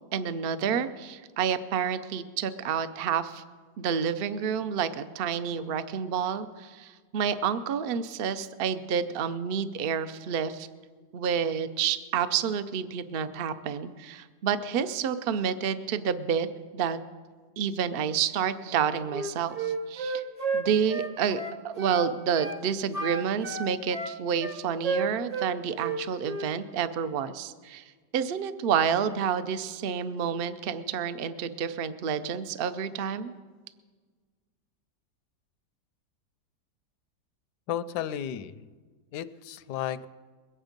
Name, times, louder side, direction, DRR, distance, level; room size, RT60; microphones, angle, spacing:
voice 1, 0.1-3.4 3.8-10.7 11.1-16.5 16.7-17.0 17.6-20.2 20.5-33.3, right 7 dB, 90° right, 12 dB, 0.5 m, -29 dB
Wind instrument woodwind instrument, 19.1-22.1 22.3-22.6 22.9-25.5 25.8-26.5, right 4 dB, 35° right, 0.6 m, -32 dB
voice 2, 37.7-38.7 39.1-40.1, left 10 dB, 75° left, 14 dB, 1.1 m, -33 dB
22.0 x 8.8 x 5.2 m, 1.5 s
omnidirectional pair, 1.8 m